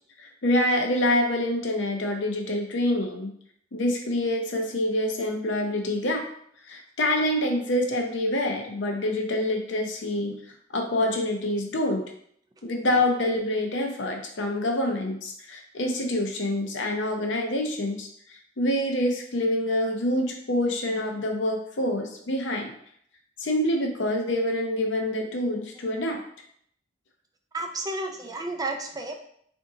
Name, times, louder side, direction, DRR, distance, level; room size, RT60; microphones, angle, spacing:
voice 1, 0.2-3.3 3.7-6.2 6.7-10.3 10.7-12.0 12.6-22.7 23.4-26.2, left 1 dB, 70° left, 3 dB, 0.7 m, -26 dB
voice 2, 27.5-29.2, right 2 dB, 20° right, 4 dB, 0.4 m, -31 dB
3.6 x 2.6 x 3.7 m, 0.65 s
head